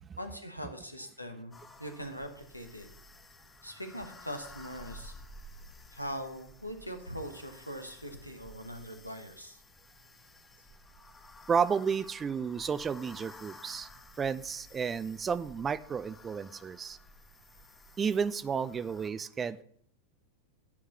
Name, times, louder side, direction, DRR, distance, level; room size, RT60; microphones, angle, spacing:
voice 1, 0.2-2.9 3.6-5.1 5.9-9.6, equal, 90° left, 6 dB, 1.1 m, -41 dB
sound 1, 1.5-19.1, left 1 dB, 15° left, 0.8 m, -53 dB
voice 2, 11.5-13.9 14.2-17.0 18.0-19.6, right 6 dB, 20° right, 16 dB, 0.4 m, -32 dB
9.6 x 4.7 x 7.1 m, 0.62 s
figure-of-eight pair, 90°, 0 cm